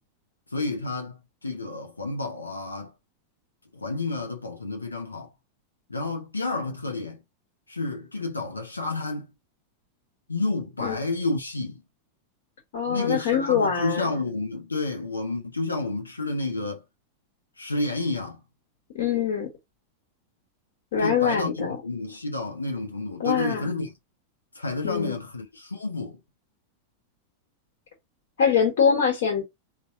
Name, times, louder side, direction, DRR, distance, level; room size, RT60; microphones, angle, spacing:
voice 1, 0.5-2.9 3.7-5.3 5.9-7.2 7.7-9.3 10.3-11.8 12.9-16.8 17.6-18.4 21.0-23.9 24.5-26.2, left 2 dB, 80° left, 0.6 m, -30 dB
voice 2, 12.7-14.1 18.9-19.5 20.9-21.8 23.2-23.7 24.8-25.1 28.4-29.4, left 7 dB, 55° left, 1.4 m, -23 dB
4.0 x 2.2 x 4.5 m
figure-of-eight pair, 90°, 0 cm